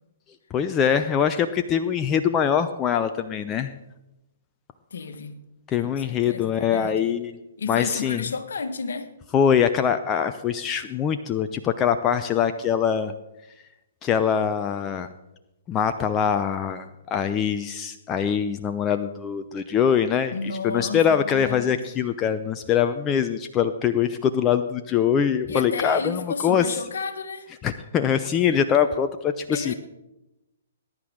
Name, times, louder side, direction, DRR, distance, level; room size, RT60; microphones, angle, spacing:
voice 1, 0.5-3.7 5.7-7.4 7.7-8.2 9.3-13.1 14.0-15.1 15.7-20.3 20.6-26.7 27.6-29.7, left 8 dB, 20° left, 0.7 m, -23 dB
voice 2, 4.9-5.4 5.8-7.0 7.6-9.1 20.3-22.1 25.5-27.5 29.5-29.7, left 4 dB, 65° left, 1.6 m, -32 dB
20.0 x 10.5 x 3.8 m
figure-of-eight pair, 125°, 0 cm